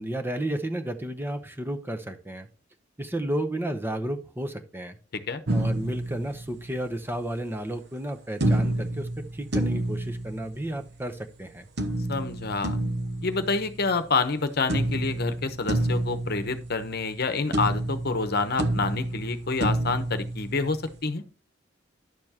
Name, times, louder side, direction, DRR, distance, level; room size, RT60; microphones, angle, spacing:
voice 1, 0.0-2.5 3.0-5.0 5.5-11.7, right 1 dB, 10° right, 6 dB, 0.8 m, -32 dB
sound 1, 5.5-7.0 8.4-11.0 11.8-14.3 14.7-17.3 17.5-21.0, right 1 dB, 60° right, 1.0 m, -29 dB
voice 2, 12.1-12.8 13.2-21.2, left 4 dB, 55° left, 9 dB, 0.9 m, -28 dB
11.0 x 6.9 x 2.9 m, 0.35 s
head